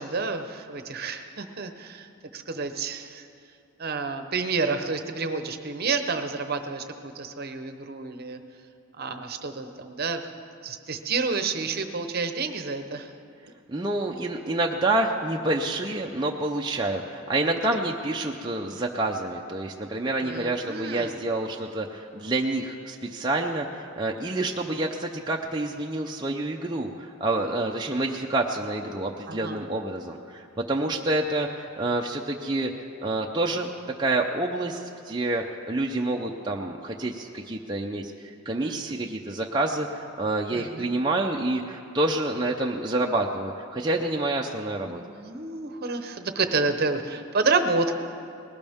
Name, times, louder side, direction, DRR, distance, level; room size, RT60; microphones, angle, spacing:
voice 1, 0.0-3.3 3.8-8.4 9.0-10.3 10.6-13.1 18.7-18.8 20.2-21.2 29.3-29.6 38.6-38.9 40.5-40.9 44.9-48.0, right 4 dB, 45° right, 8 dB, 0.8 m, -29 dB
voice 2, 13.7-32.7 33.0-33.7 34.0-45.0, right 2 dB, 20° right, 0 dB, 0.6 m, -28 dB
20.0 x 17.5 x 3.6 m, 2.5 s
head